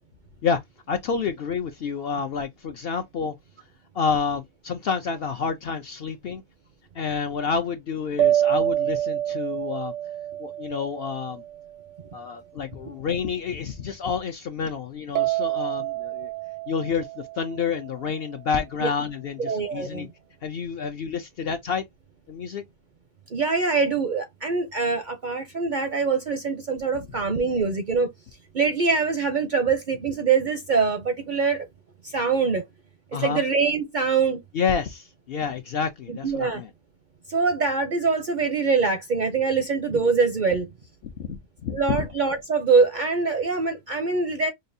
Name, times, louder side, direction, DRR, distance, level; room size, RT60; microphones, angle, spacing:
voice 1, 0.9-3.3 3.9-6.4 7.0-9.9 10.4-11.4 12.1-16.3 16.7-20.1 20.4-21.8 22.3-22.6 33.1-33.4 34.5-36.7 41.0-42.1, left 6 dB, 60° left, 0.7 m, -29 dB
sound 1, 8.2-11.7 15.2-18.2, right 12 dB, 80° right, 1.0 m, -27 dB
voice 2, 19.4-20.1 23.3-28.1 28.5-31.7 32.0-32.6 33.2-34.4 36.1-36.6 37.3-40.7 41.7-44.5, right 4 dB, 55° right, 0.6 m, -24 dB
5.3 x 2.3 x 2.6 m
omnidirectional pair, 1.4 m